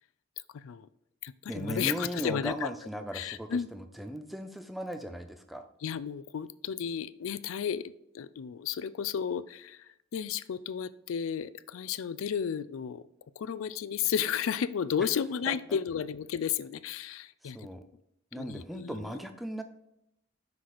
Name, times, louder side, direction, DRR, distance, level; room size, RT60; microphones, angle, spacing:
voice 1, 0.5-0.9 1.2-2.7 3.1-3.7 5.8-9.8 10.1-13.0 13.4-17.7 18.3-19.1, left 8 dB, 75° left, 16 dB, 0.3 m, -33 dB
voice 2, 1.5-5.7 15.5-15.8 17.4-17.8 18.3-19.6, equal, ahead, 6 dB, 0.4 m, -37 dB
5.9 x 4.0 x 4.7 m, 0.81 s
head